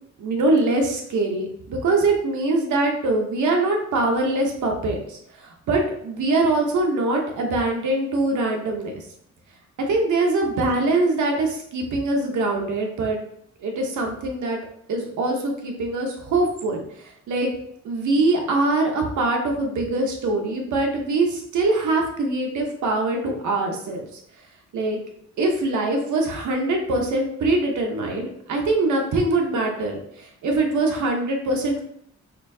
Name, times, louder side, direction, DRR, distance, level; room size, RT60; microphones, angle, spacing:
voice 1, 0.2-9.0 9.9-13.2 13.6-14.6 14.9-16.8 17.3-17.6 17.8-24.1 24.7-25.0 25.4-31.8, right 2 dB, 75° right, 1 dB, 0.9 m, -23 dB
4.3 x 2.6 x 2.6 m, 0.68 s
wide cardioid pair, 175°, 30 cm